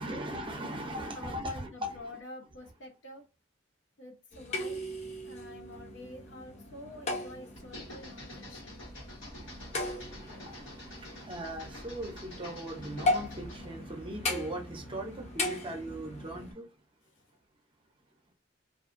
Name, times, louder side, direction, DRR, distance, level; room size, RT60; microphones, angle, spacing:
voice 1, 0.0-2.0 9.3-16.7, right 1 dB, 25° right, 0.5 m, -39 dB
voice 2, 1.1-3.2 4.0-4.9 5.2-8.9 17.1-17.2, left 1 dB, 70° left, 0.8 m, -48 dB
sound 1, 4.3-16.5, left 2 dB, 35° left, 0.6 m, -38 dB
sound 2, 7.6-13.7, left 1 dB, 85° left, 1.2 m, -47 dB
2.4 x 2.2 x 2.5 m
head